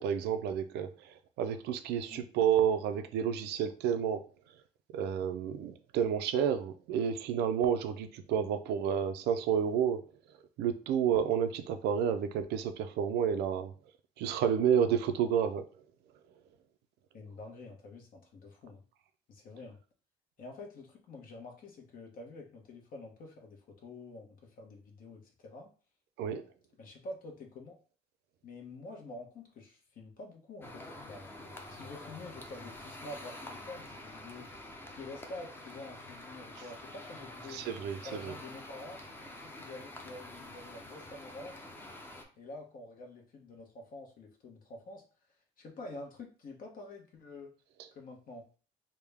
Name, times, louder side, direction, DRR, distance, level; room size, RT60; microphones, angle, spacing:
voice 1, 0.0-4.3 4.9-10.0 10.6-13.7 14.2-15.7 26.2-26.4 37.5-38.3, right 8 dB, 80° right, 9 dB, 0.5 m, -30 dB
voice 2, 17.1-18.8 19.3-19.8 20.4-25.7 26.8-27.7 28.4-31.3 31.7-34.5 34.9-37.6 38.0-39.0 39.4-41.5 42.4-45.0 45.6-47.5 47.9-48.5, left 2 dB, 55° left, 2 dB, 1.1 m, -47 dB
sound 1, 30.6-42.2, left 1 dB, 15° left, 0.7 m, -47 dB
3.5 x 2.2 x 3.4 m, 0.37 s
cardioid pair, 110°, 17 cm